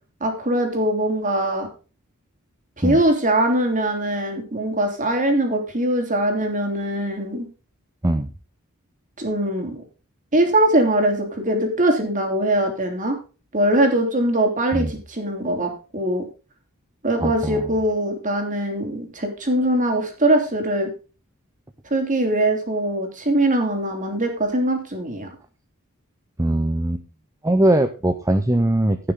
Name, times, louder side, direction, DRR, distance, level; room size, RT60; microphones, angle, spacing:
voice 1, 0.2-1.7 2.8-7.5 9.2-9.8 10.3-13.2 13.5-16.2 17.0-20.9 21.9-25.3, right 1 dB, 35° right, 3 dB, 3.2 m, -22 dB
voice 2, 17.2-17.7 26.4-27.0 27.4-29.0, right 1 dB, 15° right, 7 dB, 0.7 m, -20 dB
16.0 x 6.7 x 3.7 m, 0.34 s
head